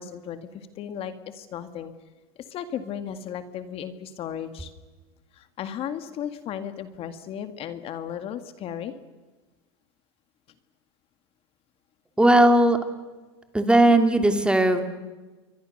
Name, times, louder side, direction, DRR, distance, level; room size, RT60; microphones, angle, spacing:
voice 1, 0.0-1.9 2.5-4.7 5.3-8.9, left 9 dB, 40° left, 9 dB, 2.0 m, -35 dB
voice 2, 12.2-12.8 13.5-14.8, right 1 dB, 5° right, 7 dB, 2.6 m, -17 dB
28.5 x 23.0 x 6.6 m, 1.3 s
supercardioid pair, 115°, 14 cm